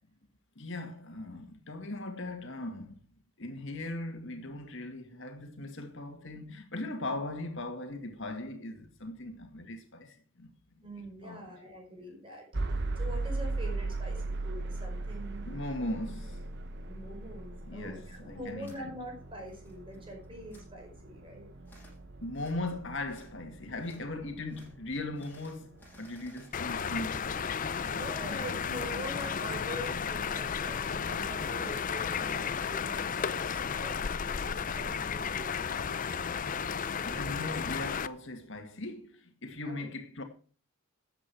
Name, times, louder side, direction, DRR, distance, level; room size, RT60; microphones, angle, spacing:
voice 1, 0.6-3.0 3.4-10.5 11.2-11.5 15.5-16.4 17.6-18.8 22.2-27.3 28.1-28.7 37.0-40.2, left 2 dB, 60° left, 2.0 m, -39 dB
voice 2, 10.8-15.5 16.8-21.5 27.8-37.5 39.6-39.9, right 1 dB, 25° right, 5.0 m, -45 dB
sound 1, 12.5-28.5, right 2 dB, 55° right, 1.2 m, -39 dB
sound 2, 18.6-18.8 19.2-20.0 20.2-20.6 21.6-22.0 22.3-22.6 23.1-23.3 23.8-24.0 24.5-24.7 25.1-27.5 27.7-29.4, left 1 dB, 10° left, 6.8 m, -58 dB
sound 3, 26.5-38.1, left 6 dB, 40° left, 0.5 m, -33 dB
13.5 x 8.1 x 4.6 m
head